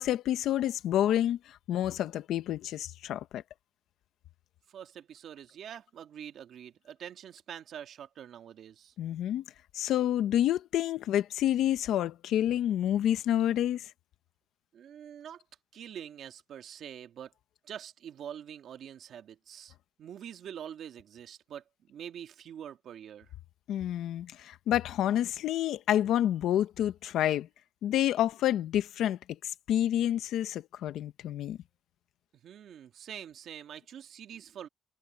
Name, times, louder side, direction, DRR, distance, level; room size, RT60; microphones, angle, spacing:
voice 1, 0.0-3.4 9.0-9.4 9.7-13.9 23.7-27.5 27.8-29.2 29.4-31.6, left 11 dB, 80° left, 1.1 m, -28 dB
voice 2, 4.7-8.9 14.7-15.4 15.7-17.3 17.6-23.3 32.4-34.7, right 9 dB, 70° right, 1.9 m, -45 dB
cardioid pair, 90°, 0 cm